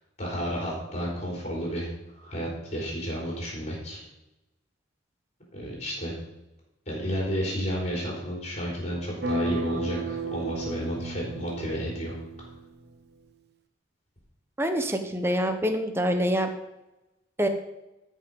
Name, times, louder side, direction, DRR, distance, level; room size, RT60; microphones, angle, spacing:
voice 1, 0.2-1.9 2.1-4.0 5.5-6.1 6.9-12.1, equal, 35° left, -4 dB, 3.9 m, -31 dB
sound 1, 9.2-12.9, right 2 dB, 55° right, 0.9 m, -33 dB
voice 2, 14.6-16.5 17.4-17.5, equal, 10° right, 6 dB, 1.0 m, -25 dB
13.0 x 5.7 x 5.4 m, 0.98 s
head